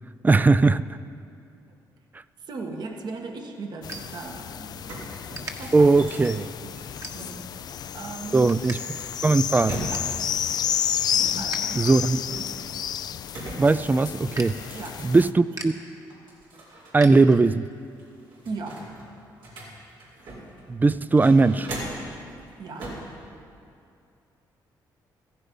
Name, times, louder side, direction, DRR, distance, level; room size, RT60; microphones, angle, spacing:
voice 1, 0.2-0.9 5.7-6.5 8.3-8.8 9.2-9.7 11.8-12.2 13.6-14.6 15.0-15.7 16.9-17.7 20.7-21.7, right 3 dB, 20° right, 16 dB, 0.4 m, -19 dB
voice 2, 2.4-4.8 5.6-5.9 6.6-6.8 7.1-7.6 7.9-8.7 9.9-10.1 11.2-11.9 14.7-15.0 18.4-18.9 22.6-23.0, right 3 dB, 60° right, 2 dB, 1.6 m, -37 dB
sound 1, 2.7-4.8 5.1-5.5 6.1-6.3 6.9-7.6 8.0-8.8 9.1-9.2 9.5-10.2 10.6-11.6 12.0-17.7, right 3 dB, 40° right, 1.6 m, -42 dB
sound 2, 3.8-15.3, left 9 dB, 55° left, 0.4 m, -31 dB
sound 3, 4.3-4.4 4.6-7.4 8.3-10.3 11.1-12.7 13.3-15.7 16.1-17.2 17.5-17.6 18.0-20.6 21.0-22.1 22.8-23.1, right 1 dB, 85° right, 4.8 m, -39 dB
15.0 x 15.0 x 5.5 m, 2.5 s
cardioid pair, 85°, 8 cm